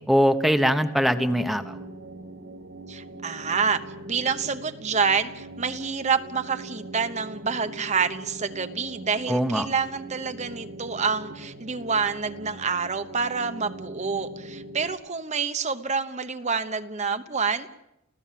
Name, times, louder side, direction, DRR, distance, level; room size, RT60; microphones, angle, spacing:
voice 1, 0.0-1.8 9.3-9.7, equal, ahead, 7 dB, 1.0 m, -22 dB
sound 1, 0.9-14.9, right 1 dB, 75° right, 2.2 m, -42 dB
voice 2, 2.9-17.7, right 5 dB, 35° right, 9 dB, 1.0 m, -27 dB
30.0 x 15.5 x 7.6 m, 0.87 s
head